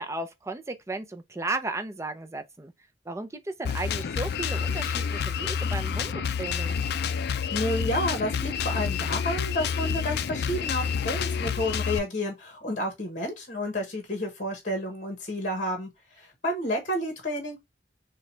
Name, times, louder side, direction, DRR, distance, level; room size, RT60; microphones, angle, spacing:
voice 1, 0.0-2.7 3.1-6.8, right 2 dB, 15° right, 0.5 m, -35 dB
Drum kit, 3.6-12.0, left 6 dB, 60° left, 0.4 m, -29 dB
voice 2, 7.5-15.9 16.2-17.6, left 1 dB, 45° left, 1.2 m, -30 dB
6.4 x 2.3 x 3.2 m
head